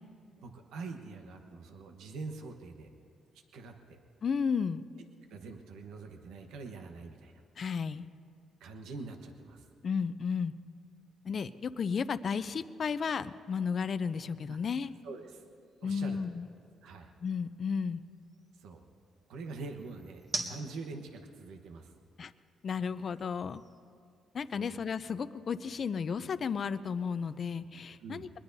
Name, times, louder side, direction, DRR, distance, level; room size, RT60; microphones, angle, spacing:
voice 1, 0.4-2.9 3.3-4.0 5.0-5.1 5.3-7.4 8.6-9.6 14.4-14.6 15.0-15.4 15.8-16.2 16.8-17.1 18.5-18.8 19.3-21.9 24.5-24.8 28.0-28.3, right 4 dB, 85° right, 4 dB, 1.1 m, -44 dB
voice 2, 4.2-4.8 7.6-8.1 9.8-10.5 11.2-14.9 15.8-16.5 17.2-18.0 22.2-22.3 22.6-23.6 24.3-28.3, left 6 dB, 50° left, 13 dB, 0.5 m, -33 dB
sound 1, 10.5-24.8, right 2 dB, 35° right, 2.1 m, -49 dB
23.0 x 20.0 x 2.7 m, 2.4 s
cardioid pair, 90°, 0 cm